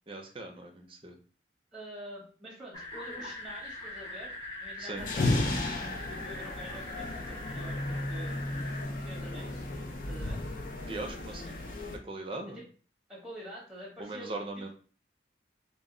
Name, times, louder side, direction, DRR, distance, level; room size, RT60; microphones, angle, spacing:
voice 1, 0.1-1.2 4.8-5.1 10.9-11.6 12.0-12.6 14.0-14.7, right 2 dB, 30° right, 2 dB, 0.4 m, -39 dB
voice 2, 1.7-4.3 4.6-8.4 9.0-9.7 10.1-10.4 12.5-12.6 13.1-14.7, equal, 5° right, -4 dB, 0.8 m, -47 dB
sound 1, 2.7-8.9, left 2 dB, 25° left, 0.9 m, -42 dB
sound 2, 5.0-12.0, left 2 dB, 50° left, 0.4 m, -34 dB
2.1 x 2.0 x 3.6 m, 0.41 s
head